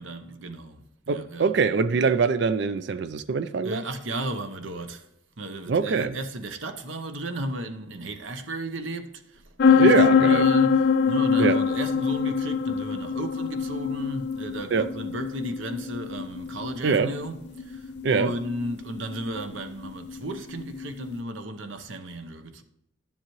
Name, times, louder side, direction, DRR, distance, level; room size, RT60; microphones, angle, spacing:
voice 1, 0.0-1.5 3.6-5.1 5.4-22.6, right 1 dB, 85° right, 0.9 m, -35 dB
voice 2, 1.1-3.8 5.7-6.2 9.8-10.5 11.4-11.6 14.7-14.9 16.8-17.1 18.0-18.3, right 5 dB, 60° right, 0.4 m, -23 dB
sound 1, 9.6-21.1, left 6 dB, 60° left, 0.4 m, -24 dB
11.0 x 7.3 x 3.1 m
head